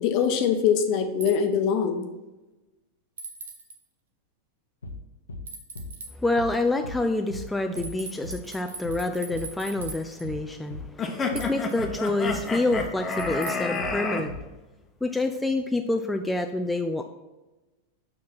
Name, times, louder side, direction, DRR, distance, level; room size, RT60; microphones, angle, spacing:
voice 1, 0.0-2.1, left 7 dB, 40° left, 7 dB, 1.0 m, -23 dB
sound 1, 1.2-1.4 3.2-3.8 5.5-6.1 7.7-10.3 11.3-11.8 13.1-13.8, right 3 dB, 65° right, 1.1 m, -40 dB
sound 2, 4.8-5.0 5.3-5.5 5.8-6.0 6.4-6.6 6.8-7.0 7.3-7.5 7.8-8.0 8.2-8.4 8.8-9.0 9.3-9.5 9.8-10.0 10.2-10.4 10.7-10.9 11.3-11.5 11.8-12.0 12.3-12.5 12.7-12.9 13.2-13.4 13.8-14.0 14.3-14.5, left 2 dB, 70° left, 0.9 m, -38 dB
voice 2, 6.2-14.4 15.0-17.0, left 2 dB, 5° left, 5 dB, 0.5 m, -27 dB
sound 3, 11.0-14.2, left 4 dB, 20° left, 1.1 m, -30 dB
7.2 x 6.0 x 4.2 m, 1.1 s
figure-of-eight pair, 90°, 0 cm